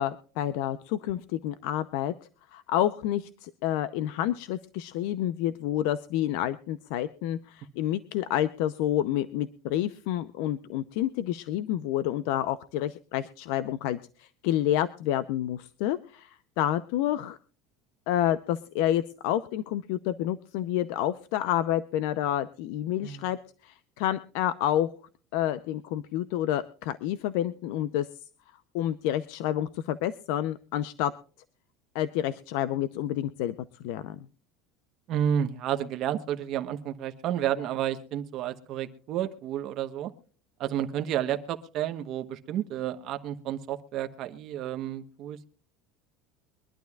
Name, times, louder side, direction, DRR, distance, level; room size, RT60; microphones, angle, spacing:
voice 1, 0.0-2.1 2.5-17.4 18.1-23.4 23.6-24.9 25.3-28.1 28.7-31.1 31.9-33.5 33.8-34.2, left 12 dB, 65° left, 13 dB, 0.6 m, -29 dB
voice 2, 35.1-40.1 40.6-45.5, right 10 dB, 40° right, 6 dB, 1.0 m, -31 dB
23.5 x 11.5 x 2.4 m, 0.42 s
cardioid pair, 165°, 0 cm